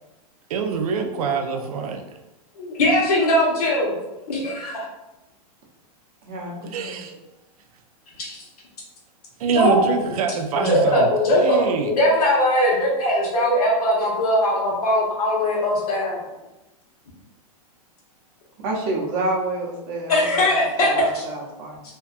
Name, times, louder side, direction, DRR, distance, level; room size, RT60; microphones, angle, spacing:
voice 1, 0.5-2.0 6.6-7.1 9.4-11.9, right 5 dB, 70° right, 5 dB, 0.4 m, -25 dB
voice 2, 2.6-4.0 4.3-4.9 6.8-6.9 8.2-8.4 9.5-9.9 10.6-16.2 20.1-21.2, left 1 dB, 80° left, -3 dB, 1.0 m, -20 dB
voice 3, 6.2-6.6 18.6-21.8, right 2 dB, 40° right, -4 dB, 0.7 m, -28 dB
2.6 x 2.2 x 2.4 m, 0.98 s
supercardioid pair, 160°, 19 cm